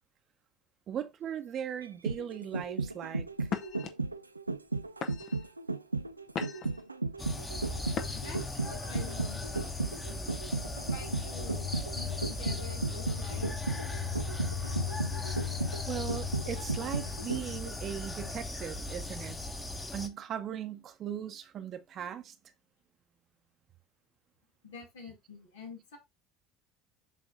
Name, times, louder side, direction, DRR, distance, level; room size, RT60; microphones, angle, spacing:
voice 1, 0.9-3.5 15.9-19.4 19.9-22.3, right 9 dB, 45° right, 0.9 m, -38 dB
sound 1, 1.8-17.7 18.0-18.1, right 3 dB, 90° right, 0.3 m, -35 dB
sound 2, 2.6-2.9 3.5-3.9 4.6-4.7 5.0-5.5 6.0-6.8 7.9-8.4, left 7 dB, 50° left, 1.0 m, -38 dB
sound 3, 7.2-20.1, left 4 dB, 15° left, 1.3 m, -37 dB
voice 2, 8.1-10.4 10.9-11.7 11.9-13.6 24.6-26.0, left 3 dB, 70° left, 2.0 m, -47 dB
7.5 x 3.2 x 4.0 m
figure-of-eight pair, 65°, 0 cm